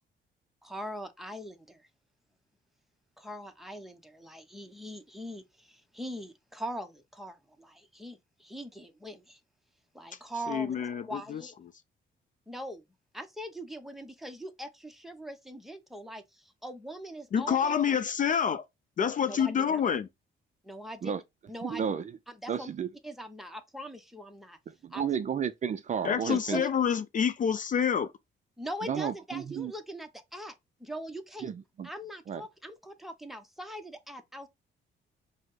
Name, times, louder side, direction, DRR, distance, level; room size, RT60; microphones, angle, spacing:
voice 1, 0.6-1.8 3.2-9.4 9.9-10.8 11.1-11.5 12.5-12.8 13.1-17.7 19.2-20.0 20.6-21.1 21.5-21.8 22.4-22.7 23.0-24.6 24.9-25.0 26.3-26.7 28.6-30.5 30.8-31.5 31.8-34.5, equal, ahead, 0.7 m, -41 dB
voice 2, 10.5-11.4 17.3-18.6 19.0-20.1 26.0-28.1, left 7 dB, 40° left, 0.4 m, -27 dB
voice 3, 21.6-22.2 22.5-22.9 24.7-26.6 28.8-29.7 31.4-31.9 32.3-32.4, right 7 dB, 40° right, 0.4 m, -32 dB
4.9 x 2.1 x 3.7 m
cardioid pair, 90°, 20 cm